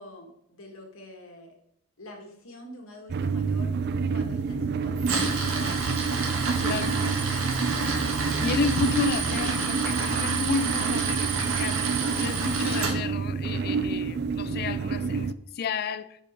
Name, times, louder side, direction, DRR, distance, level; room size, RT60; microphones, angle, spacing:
voice 1, 0.0-1.5 2.0-3.7 4.1-5.4 6.5-7.8, left 1 dB, 75° left, 1.7 m, -46 dB
sound 1, 3.1-15.3, right 5 dB, 50° right, 0.4 m, -28 dB
Tools, 5.0-12.9, right 4 dB, 80° right, 1.7 m, -29 dB
voice 2, 5.4-5.8 6.6-7.2 8.4-11.8 12.2-16.2, left 5 dB, 45° left, 0.4 m, -32 dB
9.1 x 5.3 x 5.0 m
head